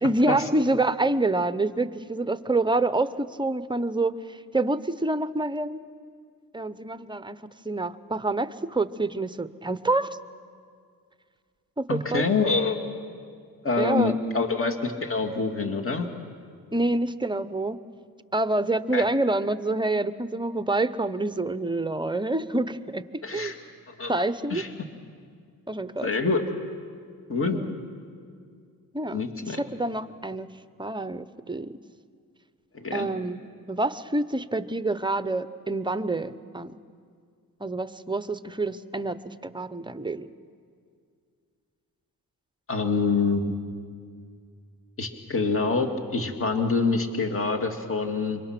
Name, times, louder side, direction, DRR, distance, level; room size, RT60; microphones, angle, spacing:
voice 1, 0.0-5.8 6.5-7.4 7.6-10.2 11.8-12.2 13.8-14.1 16.7-17.8 18.3-23.0 23.3-23.5 24.1-24.6 25.7-26.1 27.4-27.7 28.9-30.5 30.8-31.7 32.9-36.7 37.6-40.3, right 2 dB, 10° right, 13 dB, 0.7 m, -27 dB
voice 2, 11.9-12.8 13.6-16.1 18.9-19.0 23.2-23.6 23.9-24.2 24.5-24.7 26.0-26.4 27.3-27.6 29.1-29.6 32.7-33.1 42.7-43.5 45.0-48.4, left 4 dB, 35° left, 3 dB, 2.2 m, -26 dB
26.0 x 24.0 x 6.0 m, 2.2 s
cardioid pair, 85°, 37 cm